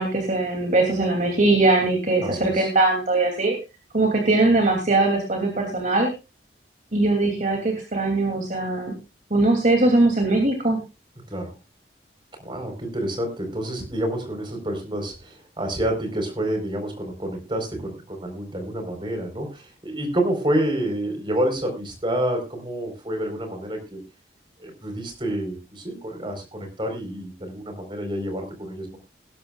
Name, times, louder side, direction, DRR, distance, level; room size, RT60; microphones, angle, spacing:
voice 1, 0.0-3.5 3.9-6.1 6.9-8.9 9.3-10.8, right 2 dB, 45° right, 1 dB, 2.8 m, -21 dB
voice 2, 2.2-2.7 11.3-11.6 12.4-24.0 24.6-29.0, right 1 dB, 30° right, 4 dB, 4.3 m, -28 dB
20.0 x 11.5 x 2.4 m, 0.27 s
head